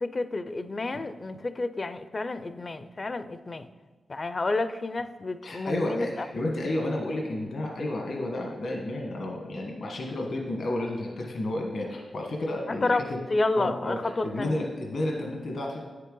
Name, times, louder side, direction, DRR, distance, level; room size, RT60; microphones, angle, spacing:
voice 1, 0.0-3.7 4.1-6.3 12.7-14.7, left 2 dB, 40° left, 12 dB, 0.4 m, -30 dB
voice 2, 5.4-13.2 13.6-15.8, left 1 dB, 65° left, 0 dB, 1.2 m, -31 dB
9.2 x 6.6 x 3.8 m, 1.3 s
cardioid pair, 85°, 0 cm